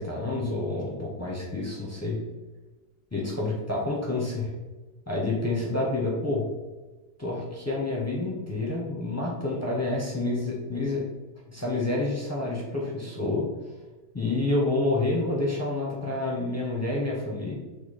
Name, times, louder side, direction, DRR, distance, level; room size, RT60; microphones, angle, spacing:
voice 1, 0.0-2.2 3.1-4.5 5.1-6.5 7.2-11.1 11.5-13.5 14.1-17.5, left 2 dB, 20° left, -4 dB, 0.4 m, -28 dB
5.5 x 2.1 x 4.1 m, 1.2 s
omnidirectional pair, 1.7 m